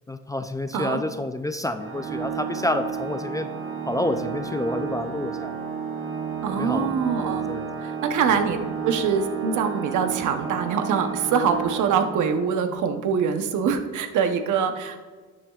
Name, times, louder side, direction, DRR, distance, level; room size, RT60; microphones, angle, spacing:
voice 1, 0.1-3.5 3.9-5.5 6.5-7.0 7.2-7.7, left 1 dB, 10° left, 9 dB, 0.3 m, -29 dB
Organ, 1.8-12.6, right 6 dB, 45° right, 1.0 m, -32 dB
voice 2, 6.4-7.5 7.8-8.6 8.8-15.0, right 6 dB, 80° right, 7 dB, 0.9 m, -24 dB
11.5 x 7.1 x 2.4 m, 1.4 s
cardioid pair, 90°, 30 cm